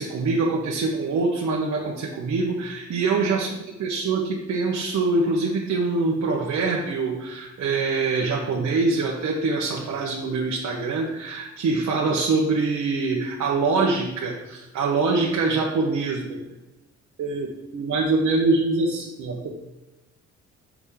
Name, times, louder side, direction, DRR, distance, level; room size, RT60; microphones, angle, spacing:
voice 1, 0.0-16.4 17.2-19.5, right 3 dB, 65° right, -2 dB, 1.1 m, -24 dB
6.7 x 6.1 x 3.7 m, 1.0 s
cardioid pair, 90°, 30 cm